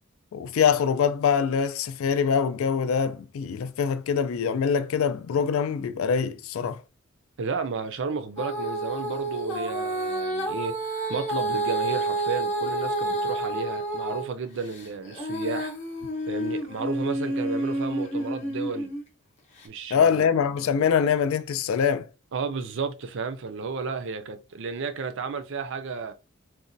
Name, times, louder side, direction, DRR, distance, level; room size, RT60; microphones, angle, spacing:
voice 1, 0.3-6.8 19.9-22.1, left 7 dB, 70° left, 0.3 m, -24 dB
voice 2, 7.4-10.7 11.1-15.7 16.3-18.9 19.6-20.3 22.3-26.1, right 4 dB, 55° right, 0.4 m, -32 dB
Female singing, 8.4-14.3 14.7-19.0 19.6-19.7, right 1 dB, 30° left, 0.7 m, -29 dB
4.0 x 2.1 x 2.6 m
head